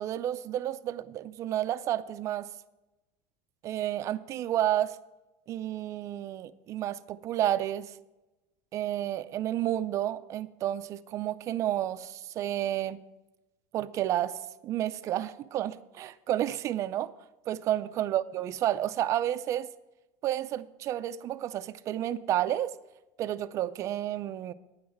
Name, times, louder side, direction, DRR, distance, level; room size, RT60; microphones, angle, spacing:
voice 1, 0.0-2.5 3.6-5.0 5.5-7.9 8.7-13.0 13.7-14.4 14.6-17.1 17.5-19.7 20.2-22.7 23.2-24.5, right 12 dB, 30° right, 0.4 m, -31 dB
9.4 x 6.3 x 8.7 m
cardioid pair, 160°, 10 cm